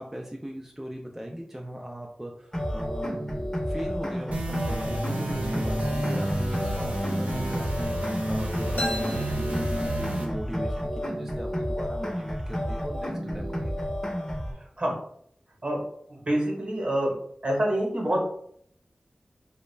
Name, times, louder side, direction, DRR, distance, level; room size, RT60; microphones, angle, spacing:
voice 1, 0.0-3.2 3.7-13.9, right 1 dB, 10° right, 1 dB, 0.3 m, -38 dB
sound 1, 2.5-14.5, equal, 20° left, 0.7 m, -31 dB
sound 2, 4.3-10.3, right 1 dB, 80° right, 0.6 m, -31 dB
sound 3, 8.8-10.5, left 1 dB, 65° left, 0.5 m, -36 dB
voice 2, 16.3-17.1 17.4-18.2, right 1 dB, 50° right, -1 dB, 0.9 m, -26 dB
2.3 x 2.1 x 3.1 m, 0.67 s
cardioid pair, 45°, 3 cm